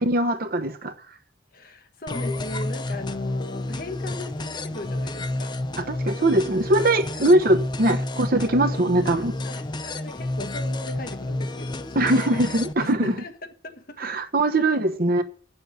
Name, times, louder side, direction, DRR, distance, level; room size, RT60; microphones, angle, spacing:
voice 1, 0.0-0.9 5.8-9.3 11.9-13.1 14.0-15.2, right 1 dB, 55° right, 1.1 m, -21 dB
voice 2, 1.5-5.6 7.2-7.3 8.7-8.8 9.4-12.4 12.8-14.2, left 2 dB, 55° left, 1.3 m, -38 dB
sound 1, 2.1-12.7, left 2 dB, 25° left, 0.5 m, -30 dB
8.0 x 6.8 x 8.0 m
head